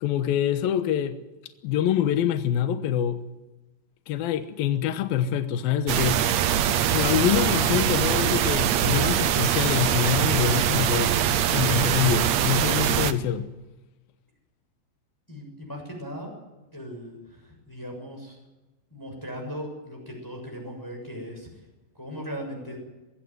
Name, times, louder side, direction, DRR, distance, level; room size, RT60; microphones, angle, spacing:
voice 1, 0.0-1.2 1.6-3.2 4.1-6.3 6.9-11.2 11.5-13.5, left 10 dB, 75° left, 2.9 m, -25 dB
sound 1, 5.9-13.1, right 10 dB, 70° right, 1.7 m, -23 dB
voice 2, 15.3-16.3 16.7-18.4 18.9-21.5 21.9-22.8, equal, 5° left, 6.6 m, -38 dB
22.5 x 16.0 x 9.4 m
omnidirectional pair, 4.3 m